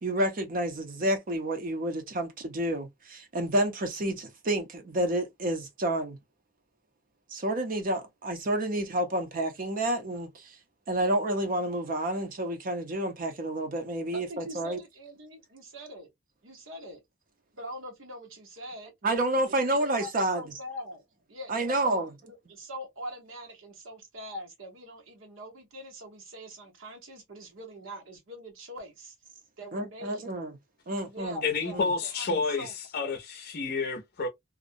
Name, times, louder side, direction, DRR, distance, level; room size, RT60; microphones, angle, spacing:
voice 1, 0.0-6.2 7.3-10.6 10.9-14.8 19.0-20.4 21.5-22.2 29.7-30.5 30.9-31.4 31.7-31.8 32.3-32.4, right 1 dB, 45° right, 0.6 m, -29 dB
voice 2, 14.1-16.1 16.4-17.0 17.5-18.9 19.5-21.0 21.3-29.1 29.6-30.3 31.0-33.1, equal, 90° right, 1.0 m, -43 dB
voice 3, 31.4-34.3, left 4 dB, 50° left, 0.5 m, -30 dB
2.4 x 2.0 x 2.5 m
head